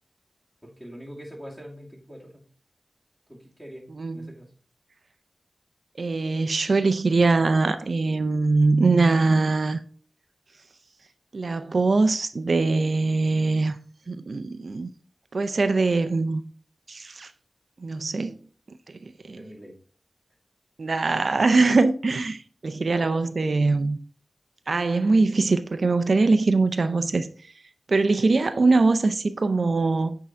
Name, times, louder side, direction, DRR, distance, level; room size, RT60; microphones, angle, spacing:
voice 1, 0.6-2.4 3.3-4.5 19.2-19.8 22.7-23.3, equal, 10° left, 2.3 m, -44 dB
voice 2, 4.0-4.3 6.0-9.8 11.3-13.8 14.1-14.9 15.3-16.4 16.9-17.3 17.8-18.4 19.0-19.4 20.8-24.0 24.7-27.3 27.9-30.2, right 3 dB, 70° right, 0.5 m, -22 dB
8.4 x 3.7 x 4.3 m
wide cardioid pair, 60°, 0 cm